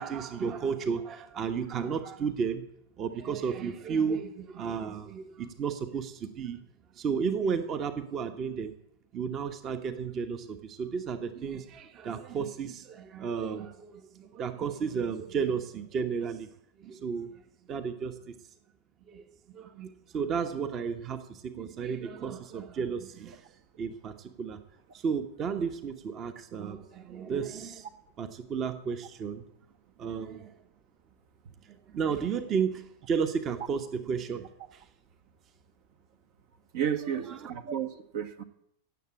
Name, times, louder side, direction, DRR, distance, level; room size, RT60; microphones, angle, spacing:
voice 1, 0.0-2.6 3.0-6.6 6.9-8.8 9.1-16.5 16.8-17.4 17.7-18.3 19.1-23.5 23.8-24.6 24.9-27.9 28.2-29.5 30.0-30.5 31.6-34.9 37.1-37.5, right 6 dB, 30° right, 8 dB, 1.2 m, -33 dB
voice 2, 36.7-38.4, right 9 dB, 50° right, 7 dB, 1.3 m, -32 dB
16.5 x 7.6 x 8.5 m, 0.75 s
figure-of-eight pair, 90°, 0 cm